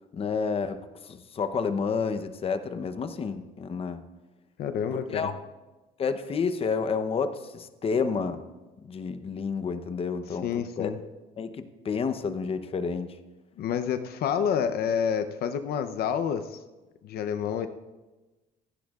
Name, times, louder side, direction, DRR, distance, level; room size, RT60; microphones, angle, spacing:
voice 1, 0.1-4.0 4.9-5.4 6.0-8.4 8.9-10.9 11.4-13.2, left 5 dB, 35° left, 9 dB, 0.8 m, -30 dB
voice 2, 4.6-5.3 10.4-11.0 13.6-16.6 17.0-17.7, left 8 dB, 65° left, 9 dB, 0.7 m, -28 dB
26.5 x 10.5 x 2.4 m, 1.2 s
cardioid pair, 110°, 17 cm